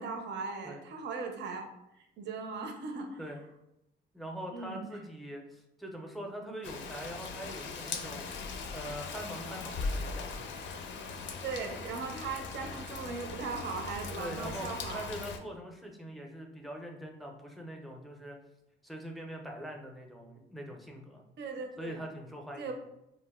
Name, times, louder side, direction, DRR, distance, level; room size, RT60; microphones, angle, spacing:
voice 1, 0.0-1.7 2.0-3.2 4.5-4.9 11.4-15.1 21.4-22.0 22.6-22.7, right 4 dB, 60° right, 3 dB, 0.5 m, -38 dB
voice 2, 4.1-8.2 8.7-10.6 14.2-18.4 18.8-21.2 21.8-22.7, equal, ahead, 1 dB, 0.5 m, -43 dB
Rain, 6.6-15.4, left 4 dB, 70° left, 0.4 m, -39 dB
2.5 x 2.1 x 3.5 m, 0.84 s
cardioid pair, 90°, 20 cm